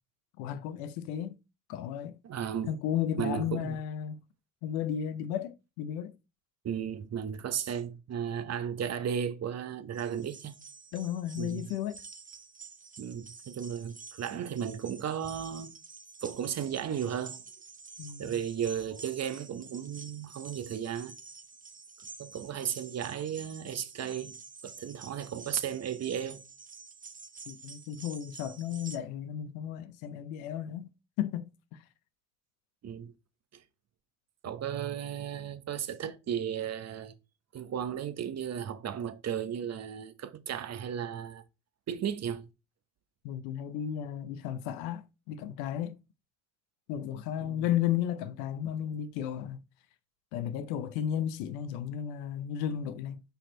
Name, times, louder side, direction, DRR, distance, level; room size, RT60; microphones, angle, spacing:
voice 1, 0.4-1.4 1.7-2.2 2.7-4.2 4.6-6.1 10.9-12.0 18.0-18.4 27.5-30.9 31.2-31.8 43.2-45.9 46.9-49.6 50.3-53.2, left 10 dB, 80° left, 0.7 m, -34 dB
voice 2, 2.2-2.7 3.2-3.8 6.6-10.6 11.4-11.7 13.0-15.7 16.2-17.4 18.2-21.2 22.2-24.4 24.6-26.4 32.8-33.1 33.5-33.6 34.4-37.1 37.5-41.4 41.9-42.5 47.4-47.6, right 8 dB, 50° right, 0.9 m, -35 dB
sound 1, 9.9-29.0, right 5 dB, 25° right, 0.9 m, -49 dB
5.4 x 4.2 x 4.4 m
hypercardioid pair, 55°, 34 cm